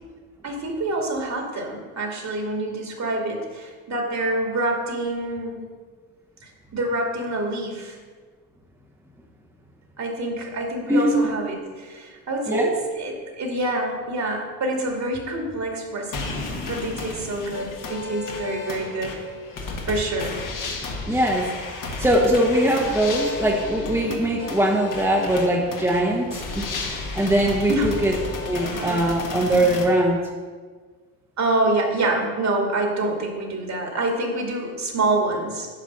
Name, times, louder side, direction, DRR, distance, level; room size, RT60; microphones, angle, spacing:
voice 1, 0.4-5.6 6.4-8.0 10.0-19.2 19.8-20.4 21.1-21.3 27.7-27.9 28.7-29.2 31.4-35.7, right 2 dB, 35° right, 1 dB, 2.3 m, -26 dB
sound 1, 16.1-29.8, left 3 dB, 45° left, 1.9 m, -33 dB
voice 2, 21.1-21.5 21.8-28.1 28.5-30.2, right 1 dB, 5° right, -2 dB, 1.4 m, -21 dB
10.0 x 5.1 x 5.5 m, 1.5 s
figure-of-eight pair, 55°, 45 cm